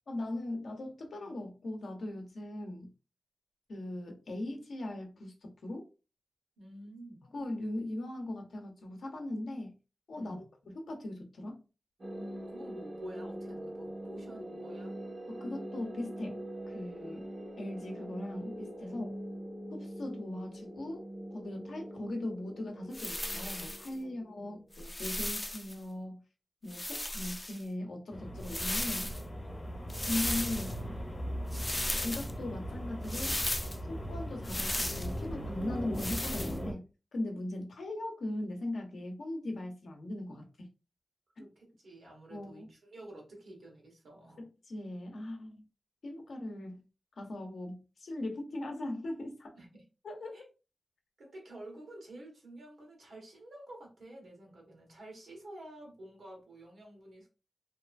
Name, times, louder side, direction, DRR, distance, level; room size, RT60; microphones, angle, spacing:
voice 1, 0.1-2.9 3.7-5.9 7.3-9.7 10.1-10.4 10.7-11.6 15.3-17.3 17.6-19.1 19.7-26.2 26.6-29.1 30.0-30.8 32.0-33.4 33.9-40.7 41.4-41.5 42.3-42.7 44.4-45.7 46.0-46.8 47.2-49.6 50.0-50.4, left 1 dB, 90° left, 0.7 m, -39 dB
voice 2, 6.6-7.2 10.1-10.5 12.1-15.0 18.8-19.0 24.0-24.5 41.4-44.5 49.6-49.7 50.3-50.4 51.2-57.3, right 1 dB, 90° right, 1.1 m, -50 dB
sound 1, 12.0-24.8, right 1 dB, 50° right, 0.8 m, -43 dB
sound 2, 22.9-23.9 24.7-25.7 26.7-27.6 28.4-29.2 29.9-30.8 31.5-32.3 33.1-33.8 34.4-35.1 36.0-36.6, left 1 dB, 25° left, 0.3 m, -36 dB
sound 3, 28.1-36.7, equal, 50° left, 0.8 m, -39 dB
2.8 x 2.3 x 2.4 m
cardioid pair, 55°, 0 cm